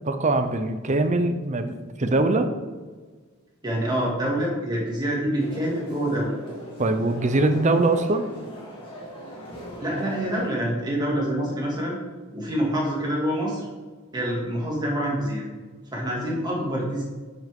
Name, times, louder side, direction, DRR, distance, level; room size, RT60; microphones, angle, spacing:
voice 1, 0.0-2.5 6.8-8.3, right 2 dB, 35° right, 8 dB, 0.7 m, -22 dB
voice 2, 3.6-6.4 9.8-11.9 12.3-13.7 14.1-15.4 15.9-17.0, equal, 20° right, -4 dB, 2.3 m, -26 dB
sound 1, 5.4-10.5, equal, 25° left, 2.2 m, -40 dB
9.4 x 5.9 x 3.7 m, 1.4 s
head